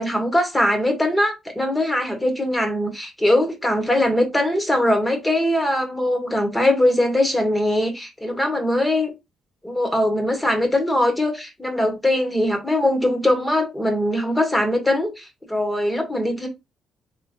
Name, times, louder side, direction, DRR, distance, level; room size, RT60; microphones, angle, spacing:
voice 1, 0.0-9.1 9.6-16.5, left 1 dB, 10° left, 1.4 m, -21 dB
3.3 x 3.1 x 2.8 m
cardioid pair, 90°, 0 cm